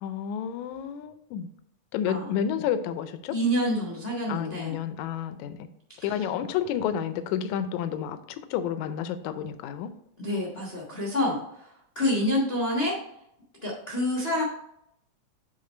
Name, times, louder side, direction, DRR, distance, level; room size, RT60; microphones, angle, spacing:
voice 1, 0.0-1.5 1.9-3.4 4.3-5.7 6.0-9.9, left 9 dB, 80° left, 11 dB, 2.0 m, -30 dB
voice 2, 3.3-4.8 6.1-6.2 10.2-11.7 11.9-13.0 13.6-14.4, left 1 dB, 50° left, -4 dB, 0.7 m, -27 dB
8.8 x 3.8 x 4.3 m, 0.76 s
omnidirectional pair, 3.4 m